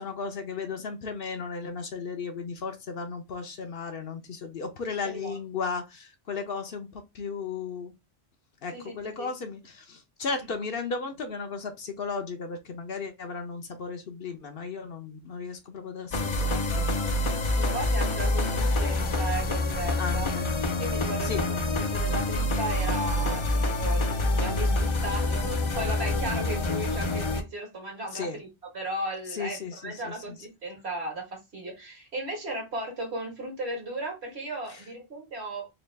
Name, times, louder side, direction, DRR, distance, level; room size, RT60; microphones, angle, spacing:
voice 1, 0.0-7.9 8.6-16.9 20.0-20.5 21.2-21.4 23.2-23.4 28.1-28.4 29.3-30.1, left 4 dB, 60° left, 0.9 m, -35 dB
voice 2, 5.0-5.4 8.7-9.3 10.4-10.5 17.5-20.3 20.7-28.5 28.7-35.7, right 2 dB, 75° right, 1.8 m, -36 dB
sound 1, 16.1-27.4, left 2 dB, 40° left, 0.4 m, -27 dB
4.0 x 2.3 x 3.3 m
omnidirectional pair, 1.1 m